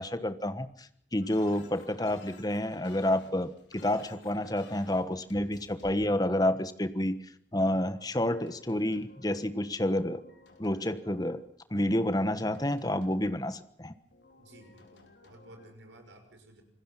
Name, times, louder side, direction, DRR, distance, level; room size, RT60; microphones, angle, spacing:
voice 1, 0.0-7.2 7.5-10.2 10.6-11.4 11.7-13.9, left 1 dB, 20° left, 11 dB, 1.3 m, -29 dB
sound 1, 1.2-6.1 7.8-9.5 9.8-11.5 11.9-13.6 14.1-15.7, left 2 dB, 75° left, 3.9 m, -55 dB
voice 2, 14.4-16.6, right 1 dB, 80° right, 5 dB, 6.1 m, -54 dB
26.5 x 20.0 x 5.8 m, 0.64 s
head